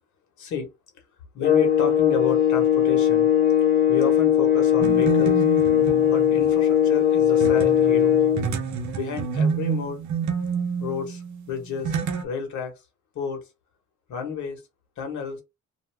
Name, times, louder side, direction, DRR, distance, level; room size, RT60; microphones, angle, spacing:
voice 1, 0.4-0.7 1.3-3.3 3.9-5.4 6.1-8.2 8.9-10.0 10.8-11.9 12.2-12.7 13.1-13.4 14.1-14.6 15.0-15.4, left 6 dB, 70° left, 1.2 m, -31 dB
sound 1, 1.4-8.5, left 10 dB, 30° left, 0.9 m, -19 dB
sound 2, 4.8-6.5 7.4-12.2, right 6 dB, 70° right, 0.8 m, -28 dB
2.6 x 2.3 x 3.3 m
cardioid pair, 90°, 30 cm